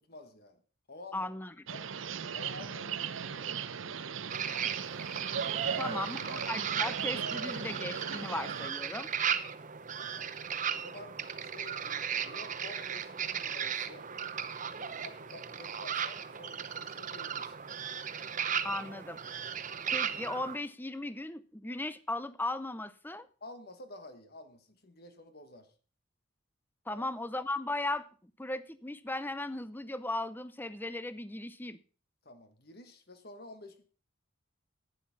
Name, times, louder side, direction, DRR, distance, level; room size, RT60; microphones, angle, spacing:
voice 1, 0.1-0.6 0.9-1.3 1.7-1.8 2.3-4.1 5.8-6.5 10.0-10.3 10.7-11.1 11.4-14.1 14.8-17.6 23.4-25.7 26.9-27.0 32.2-33.8, left 2 dB, 50° left, 8 dB, 1.4 m, -51 dB
voice 2, 1.1-1.7 5.8-9.1 18.6-19.2 19.9-23.3 26.9-31.8, left 2 dB, 10° left, 14 dB, 0.6 m, -37 dB
sound 1, 1.7-8.7, right 7 dB, 75° right, 0.7 m, -37 dB
sound 2, 4.3-20.6, right 7 dB, 40° right, 0.8 m, -36 dB
11.5 x 9.5 x 5.8 m, 0.39 s
head